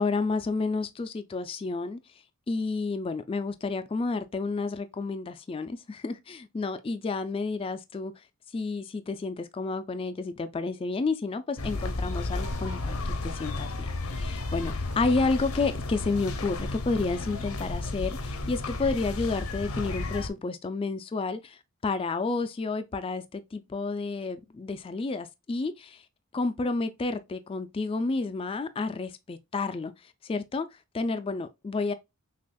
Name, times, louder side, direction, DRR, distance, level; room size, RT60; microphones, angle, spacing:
voice 1, 0.0-2.0 2.5-8.1 8.5-26.0 26.3-30.7 30.9-31.9, left 3 dB, 25° left, 0.3 m, -30 dB
sound 1, 11.6-20.3, left 2 dB, 80° left, 0.7 m, -33 dB
6.1 x 2.4 x 2.2 m
head